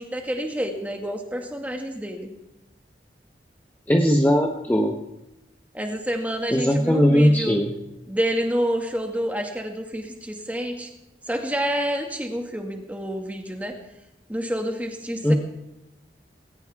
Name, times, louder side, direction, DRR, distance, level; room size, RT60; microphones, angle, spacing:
voice 1, 0.0-2.3 5.7-7.6 8.1-10.9 11.3-13.8 14.3-15.3, equal, 10° right, 3 dB, 1.9 m, -28 dB
voice 2, 3.9-4.9 6.5-7.7 15.2-15.3, equal, 10° left, 1 dB, 1.0 m, -19 dB
19.0 x 18.0 x 3.5 m, 0.94 s
head